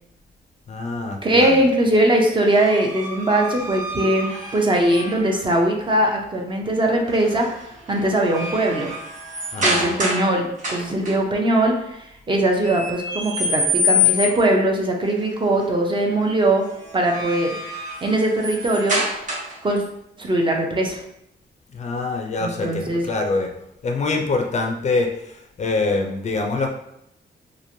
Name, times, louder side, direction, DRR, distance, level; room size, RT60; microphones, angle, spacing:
voice 1, 0.7-1.6 9.5-9.9 21.7-23.5 23.8-26.7, left 3 dB, 40° left, 3 dB, 0.4 m, -25 dB
voice 2, 1.2-8.9 9.6-16.7 16.9-17.6 18.0-19.0 19.6-19.8 20.2-21.0 22.4-23.1, right 1 dB, 25° right, 1 dB, 0.5 m, -20 dB
sound 1, 2.4-5.3 7.1-7.5 7.9-10.3 10.6-11.1 12.6-14.5 16.8-19.7, left 2 dB, 45° right, 0.9 m, -26 dB
3.0 x 2.4 x 2.6 m, 0.79 s
wide cardioid pair, 130°, 18 cm